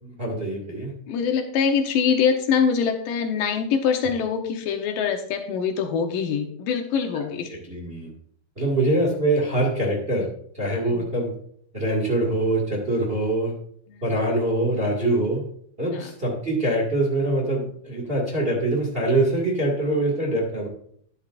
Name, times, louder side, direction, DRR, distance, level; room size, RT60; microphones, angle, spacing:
voice 1, 0.0-0.9 7.7-8.1 8.6-10.3 10.6-11.3 11.7-13.5 14.0-15.4 15.8-20.7, right 1 dB, 20° right, -1 dB, 1.6 m, -24 dB
voice 2, 1.1-7.5 10.9-11.0 13.9-14.0 15.9-16.1, left 6 dB, 80° left, 5 dB, 2.6 m, -24 dB
11.5 x 11.5 x 2.5 m, 0.64 s
omnidirectional pair, 4.0 m